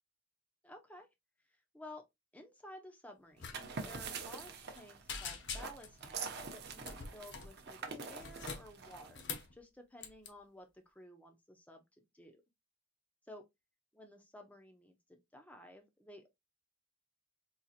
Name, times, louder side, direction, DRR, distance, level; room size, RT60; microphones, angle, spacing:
voice 1, 0.6-1.1 1.5-2.1 2.3-9.3 9.5-11.8 12.1-12.4 13.3-13.4 13.9-16.3, left 1 dB, 5° left, 0.5 m, -54 dB
sound 1, 3.4-3.6 3.8-4.0 4.4-4.8 5.1-6.0 6.8-7.5 8.1-9.5 10.0-10.3, left 5 dB, 50° left, 0.7 m, -44 dB
sound 2, 3.4-9.5, right 5 dB, 50° right, 0.6 m, -45 dB
3.9 x 2.8 x 2.4 m
head